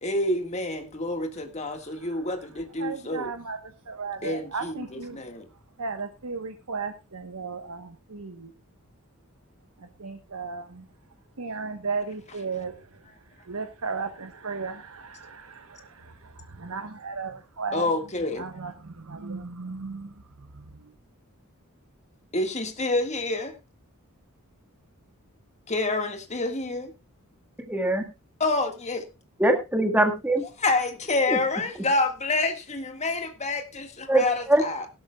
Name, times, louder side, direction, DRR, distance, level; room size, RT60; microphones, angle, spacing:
voice 1, 0.0-3.3 4.2-5.5 12.3-12.4 17.7-18.5 22.3-23.6 25.7-26.9 28.4-29.1 30.4-34.9, left 2 dB, 30° left, 1.7 m, -28 dB
voice 2, 2.8-3.6 3.9-5.2 5.8-8.5 10.0-10.6 11.4-12.7 13.5-15.4 16.6-17.8 18.4-18.7 19.1-20.1, right 4 dB, 90° right, 1.1 m, -34 dB
voice 3, 27.7-28.0 29.4-30.4 31.3-31.4 34.1-34.6, right 1 dB, 10° right, 1.8 m, -22 dB
17.5 x 12.5 x 2.3 m
head